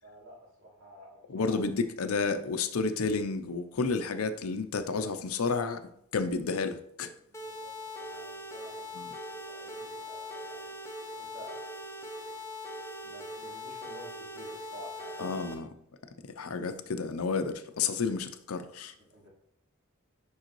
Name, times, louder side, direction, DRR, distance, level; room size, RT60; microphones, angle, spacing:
voice 1, 0.0-1.6 7.3-10.7 11.2-11.7 12.6-12.7 13.0-15.2 19.1-19.3, right 1 dB, 85° right, 2.8 m, -51 dB
voice 2, 1.3-5.8 6.1-7.1 8.9-9.1 15.2-15.7 16.2-18.9, left 4 dB, 90° left, 0.6 m, -31 dB
sound 1, 7.3-15.5, left 1 dB, 15° left, 0.8 m, -41 dB
6.5 x 5.5 x 3.1 m
head